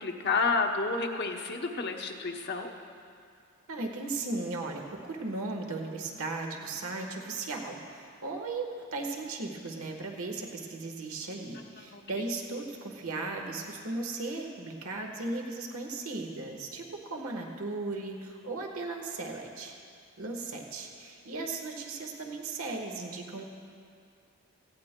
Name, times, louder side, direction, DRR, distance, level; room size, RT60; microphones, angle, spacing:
voice 1, 0.0-2.7 11.9-12.0, left 4 dB, 45° left, 3 dB, 0.9 m, -30 dB
voice 2, 3.7-19.7 20.2-23.4, right 3 dB, 70° right, 2 dB, 1.3 m, -36 dB
18.0 x 16.0 x 2.2 m, 2.3 s
head